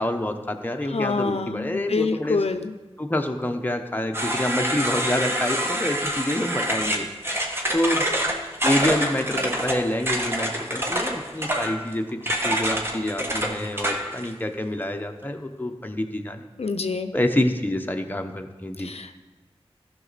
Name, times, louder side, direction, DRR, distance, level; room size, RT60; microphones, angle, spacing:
voice 1, 0.0-2.4 3.0-7.1 7.7-8.0 8.6-16.4 17.1-18.9, left 1 dB, 15° left, 4 dB, 0.8 m, -27 dB
voice 2, 0.8-2.7 16.6-17.1 18.8-19.2, left 4 dB, 75° left, 8 dB, 0.5 m, -26 dB
sound 1, 4.1-14.3, equal, 20° right, 1.3 m, -26 dB
14.5 x 6.1 x 4.1 m, 1.2 s
wide cardioid pair, 65°, 11 cm